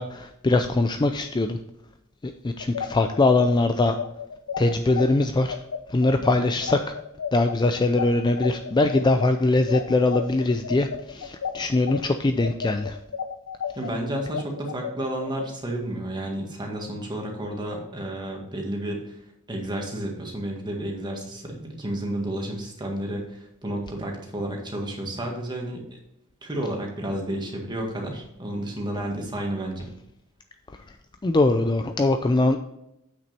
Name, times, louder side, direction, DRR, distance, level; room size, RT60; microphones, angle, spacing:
voice 1, 0.0-1.6 2.2-4.0 4.6-5.6 5.9-6.8 7.3-13.0 31.2-32.6, left 2 dB, 20° left, 7 dB, 0.4 m, -22 dB
sound 1, 2.6-12.0 12.4-15.5, left 7 dB, 80° left, 0.6 m, -32 dB
voice 2, 13.7-26.0 26.4-29.9, right 1 dB, 20° right, 0 dB, 1.8 m, -31 dB
8.1 x 6.2 x 4.3 m, 0.83 s
head